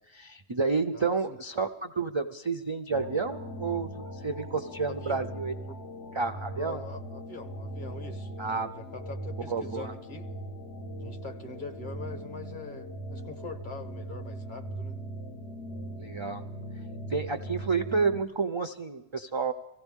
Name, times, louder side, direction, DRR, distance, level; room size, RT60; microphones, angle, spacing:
voice 1, 0.1-5.5 6.1-6.8 8.4-8.7 9.5-9.9 16.0-16.5 17.1-19.5, right 4 dB, 40° right, 7 dB, 0.4 m, -30 dB
voice 2, 0.9-1.4 4.9-5.3 6.6-8.4 8.7-10.3 11.0-15.0, left 3 dB, 45° left, 6 dB, 1.3 m, -43 dB
sound 1, 2.9-18.2, right 1 dB, 70° left, 1.7 m, -40 dB
24.0 x 16.0 x 3.6 m, 1.0 s
omnidirectional pair, 1.2 m